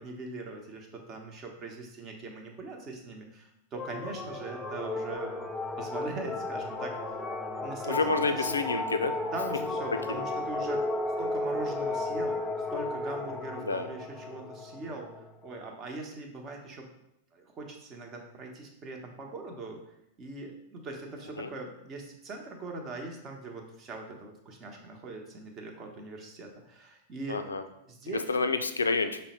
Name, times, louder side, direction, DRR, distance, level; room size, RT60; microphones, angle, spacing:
voice 1, 0.0-5.3 5.8-7.0 7.6-8.6 9.3-10.9 11.2-12.4 12.7-15.1 15.4-16.9 17.3-19.8 20.2-27.5 27.9-28.5, right 3 dB, 30° right, 2 dB, 0.9 m, -41 dB
sound 1, 3.7-15.6, left 2 dB, 10° left, 0.5 m, -34 dB
voice 2, 7.9-9.2 13.6-13.9 21.4-21.5 27.3-27.6 28.1-29.2, left 3 dB, 85° left, 8 dB, 0.4 m, -28 dB
5.5 x 2.1 x 4.2 m, 0.81 s
figure-of-eight pair, 95°, 0 cm